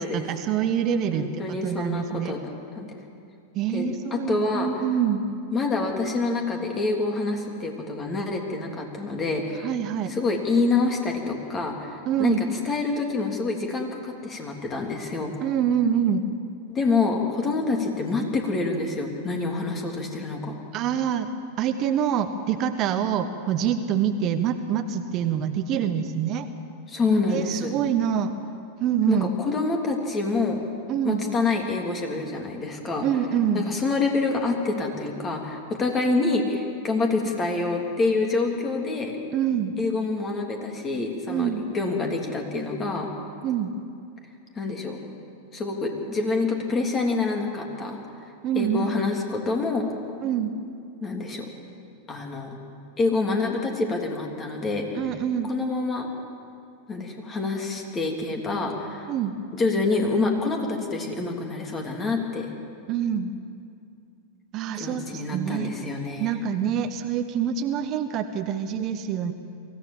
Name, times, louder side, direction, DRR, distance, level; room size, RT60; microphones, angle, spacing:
voice 1, 0.0-2.3 3.5-5.2 9.6-10.1 12.1-12.4 15.4-16.2 20.7-21.3 21.6-26.5 27.3-28.3 28.8-29.3 30.9-31.2 33.0-33.7 39.3-39.7 41.3-41.6 43.4-43.7 48.4-49.0 50.2-50.5 54.9-55.5 59.1-59.4 62.9-63.3 64.5-65.8 66.2-69.3, right 9 dB, 40° right, 8 dB, 1.1 m, -26 dB
voice 2, 1.1-2.4 2.7-2.9 3.7-4.7 5.5-9.7 10.1-12.4 12.6-15.3 16.7-20.5 26.9-27.7 29.1-30.6 31.0-33.0 33.5-39.1 39.8-43.1 44.5-45.0 45.5-48.0 48.5-49.9 51.0-51.5 52.1-52.5 53.0-54.8 55.5-56.1 56.9-59.1 59.5-62.5 64.8-66.3, left 3 dB, 25° left, 2 dB, 3.4 m, -27 dB
23.5 x 15.5 x 7.5 m, 2.4 s
hypercardioid pair, 95°, 0 cm